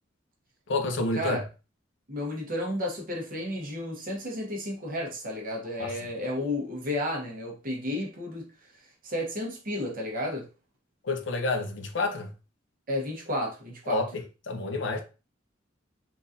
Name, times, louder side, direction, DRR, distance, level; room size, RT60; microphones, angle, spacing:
voice 1, 0.7-1.4 5.8-5.9 11.0-12.3 13.9-15.0, left 3 dB, 65° left, 0.6 m, -29 dB
voice 2, 2.1-8.5 9.0-10.4 12.9-14.0, left 1 dB, 45° right, 1.0 m, -32 dB
3.8 x 2.5 x 2.6 m
head